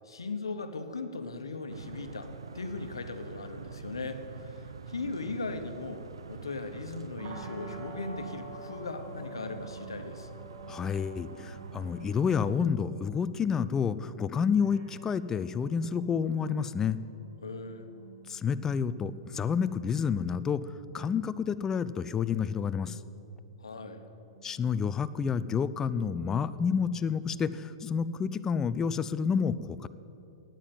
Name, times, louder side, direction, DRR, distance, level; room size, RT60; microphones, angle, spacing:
voice 1, 0.1-10.3 17.4-17.9 23.6-24.0, left 3 dB, 90° left, 7 dB, 1.0 m, -38 dB
sound 1, 1.7-12.6, right 5 dB, 85° right, 0.6 m, -46 dB
sound 2, 7.2-27.0, right 3 dB, 65° right, 1.8 m, -49 dB
voice 2, 10.7-17.0 18.3-20.6 20.9-23.0 24.4-29.9, left 6 dB, 20° left, 15 dB, 0.4 m, -29 dB
9.2 x 8.7 x 9.3 m, 3.0 s
hypercardioid pair, 115°, 2 cm